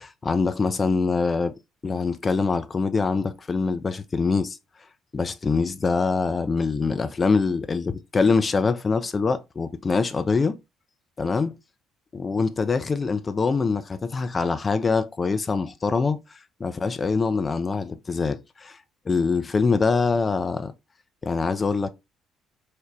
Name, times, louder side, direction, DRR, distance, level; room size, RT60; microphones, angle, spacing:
voice 1, 0.0-4.6 5.1-10.6 11.2-11.5 12.1-18.8 19.1-20.7 21.2-21.9, left 4 dB, 30° left, 0.4 m, -24 dB
3.8 x 2.1 x 3.1 m
figure-of-eight pair, 50°, 0 cm